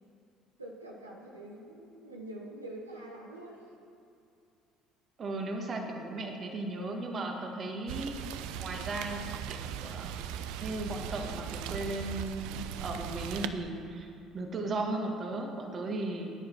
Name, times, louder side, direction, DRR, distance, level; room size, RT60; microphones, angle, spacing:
voice 1, 0.6-3.8, right 1 dB, 85° right, -2 dB, 1.0 m, -45 dB
voice 2, 5.2-8.2 8.6-9.2 9.5-10.2 10.6-16.3, right 2 dB, 40° right, 3 dB, 1.6 m, -36 dB
Rain, 7.9-13.5, right 9 dB, 60° right, 0.4 m, -39 dB
14.0 x 9.9 x 4.6 m, 2.4 s
figure-of-eight pair, 55°, 0 cm